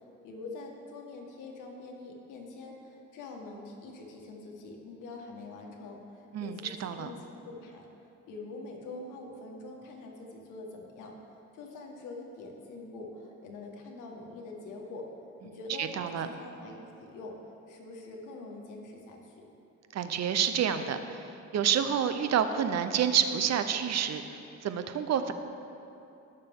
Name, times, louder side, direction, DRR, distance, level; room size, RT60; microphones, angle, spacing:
voice 1, 0.2-7.9 8.3-11.1 11.5-15.1 15.4-17.4 17.7-19.4, left 3 dB, 90° left, 0 dB, 1.7 m, -44 dB
voice 2, 6.3-7.1 15.8-16.3 19.9-21.2 21.5-24.2 24.6-25.3, right 8 dB, 60° right, 9 dB, 0.8 m, -28 dB
18.5 x 6.7 x 3.7 m, 2.8 s
cardioid pair, 90°, 30 cm